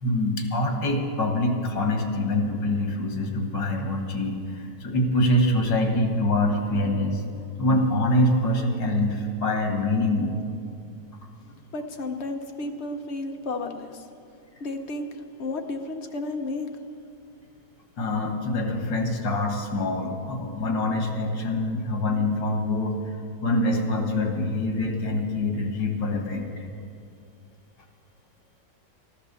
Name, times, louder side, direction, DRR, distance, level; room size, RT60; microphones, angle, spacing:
voice 1, 0.0-7.2 7.6-10.4 18.0-23.0 23.4-26.7, left 1 dB, 90° left, 3 dB, 2.4 m, -25 dB
voice 2, 11.7-14.0 14.6-15.1 15.4-16.7, left 2 dB, 45° left, 5 dB, 1.0 m, -32 dB
14.0 x 11.5 x 6.9 m, 2.4 s
omnidirectional pair, 1.9 m